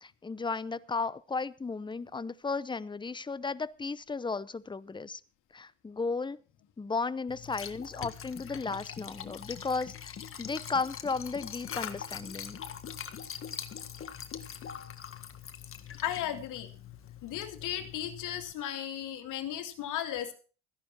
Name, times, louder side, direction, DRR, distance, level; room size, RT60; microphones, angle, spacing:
voice 1, 0.0-5.2 5.5-6.4 6.8-10.1 10.4-12.6, left 4 dB, 15° left, 17 dB, 0.8 m, -34 dB
Liquid, 7.3-18.5, left 8 dB, 35° left, 1.7 m, -43 dB
voice 2, 16.0-16.7 17.2-20.3, left 11 dB, 60° left, 6 dB, 2.5 m, -35 dB
15.0 x 11.0 x 4.4 m, 0.38 s
hypercardioid pair, 65°, 35 cm